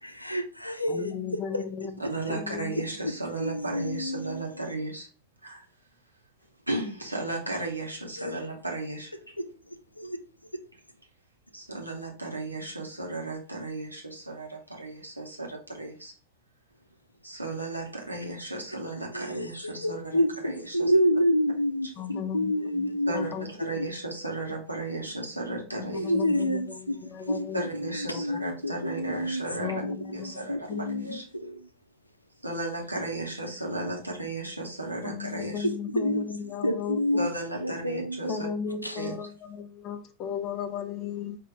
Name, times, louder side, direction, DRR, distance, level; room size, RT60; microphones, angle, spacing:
voice 1, 0.0-1.1 1.5-1.6 2.8-3.1 3.4-4.7 8.2-8.4 9.4-9.5 10.0-10.2 19.1-23.3 23.6-23.9 25.9-27.0 27.3-29.4 29.8-31.7 35.6-36.3 36.6-37.3 37.6-38.4 38.8-39.0, equal, 85° left, 0.5 m, -29 dB
voice 2, 0.9-2.0 2.3-2.8 19.7-20.0 22.0-23.5 25.7-27.7 28.1-28.4 29.6-31.2 35.0-37.0 38.3-41.4, left 7 dB, 35° left, 0.6 m, -36 dB
voice 3, 2.1-5.1 5.4-5.6 6.7-9.3 11.5-16.1 17.2-20.9 21.8-21.9 23.1-26.1 27.5-29.8 30.1-30.7 31.0-31.2 32.4-35.7 37.2-38.4 39.0-39.2, right 2 dB, 85° right, 1.2 m, -35 dB
5.0 x 2.8 x 3.6 m
figure-of-eight pair, 90°, 0 cm